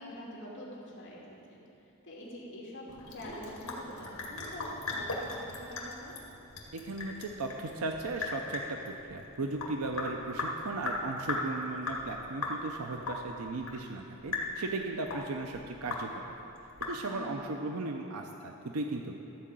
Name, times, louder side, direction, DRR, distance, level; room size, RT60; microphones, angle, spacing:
voice 1, 0.0-1.6 2.0-6.1 17.1-17.6, left 1 dB, 55° left, -5 dB, 2.6 m, -45 dB
Sink (filling or washing) / Drip, 2.9-17.3, left 3 dB, 75° left, 1.9 m, -39 dB
voice 2, 6.7-16.1 16.9-19.1, right 2 dB, 85° right, 3 dB, 0.6 m, -36 dB
14.0 x 4.7 x 7.7 m, 2.9 s
head